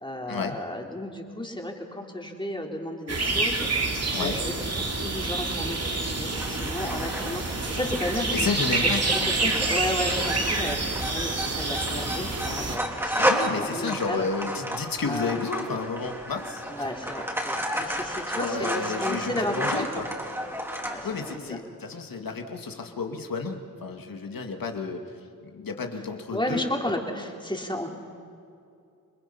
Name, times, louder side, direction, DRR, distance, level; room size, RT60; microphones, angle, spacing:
voice 1, 0.0-4.5 4.9-10.8 11.1-14.3 15.0-15.4 16.7-19.8 20.8-21.6 26.3-27.9, left 1 dB, 15° left, 1 dB, 3.4 m, -33 dB
sound 1, 3.1-12.8, right 3 dB, 45° right, 2.7 m, -28 dB
sound 2, 6.3-21.4, equal, 5° right, 3.4 m, -32 dB
voice 2, 8.3-9.5 13.1-16.6 17.8-18.0 18.3-20.0 21.0-25.0 25.4-26.6, left 4 dB, 70° left, 4 dB, 2.2 m, -31 dB
28.5 x 20.5 x 5.7 m, 2.5 s
cardioid pair, 60°, 36 cm